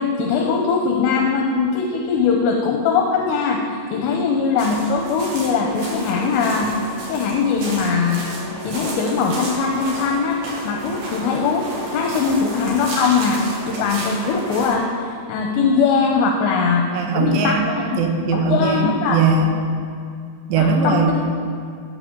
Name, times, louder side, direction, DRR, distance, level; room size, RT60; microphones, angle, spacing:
voice 1, 0.0-6.7 7.1-8.2 8.6-16.9 17.1-17.5 17.9-18.0 18.3-19.2 20.6-21.1, left 5 dB, 80° left, 1 dB, 2.8 m, -21 dB
sound 1, 4.6-14.8, right 2 dB, 55° right, 3.4 m, -34 dB
sound 2, 4.7-14.7, right 1 dB, 40° left, 1.9 m, -35 dB
voice 2, 16.9-19.5 20.5-21.1, right 4 dB, 80° right, 4 dB, 3.0 m, -20 dB
14.0 x 8.6 x 3.8 m, 2.4 s
omnidirectional pair, 5.3 m